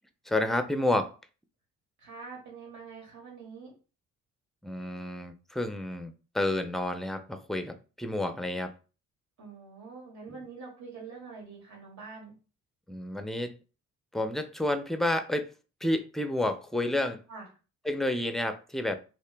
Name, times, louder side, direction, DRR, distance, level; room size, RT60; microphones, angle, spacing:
voice 1, 0.3-1.1 4.6-8.7 10.3-10.4 12.9-13.5 14.1-15.5 15.8-17.2 17.8-19.0, left 1 dB, ahead, 0.4 m, -30 dB
voice 2, 2.0-3.7 9.4-12.4 17.3-17.5, right 4 dB, 70° right, 2.0 m, -45 dB
3.2 x 2.8 x 3.3 m
cardioid pair, 90°, 30 cm